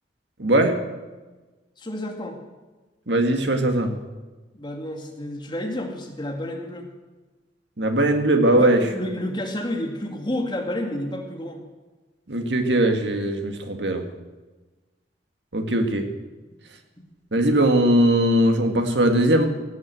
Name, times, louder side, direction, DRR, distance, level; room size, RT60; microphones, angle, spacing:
voice 1, 0.4-0.8 3.1-3.9 7.8-8.8 12.3-14.0 15.5-16.1 17.3-19.4, right 1 dB, 75° right, 5 dB, 1.9 m, -20 dB
voice 2, 1.8-2.4 4.5-6.9 8.5-11.6, left 1 dB, 25° left, 2 dB, 2.2 m, -30 dB
16.5 x 10.0 x 7.7 m, 1.2 s
head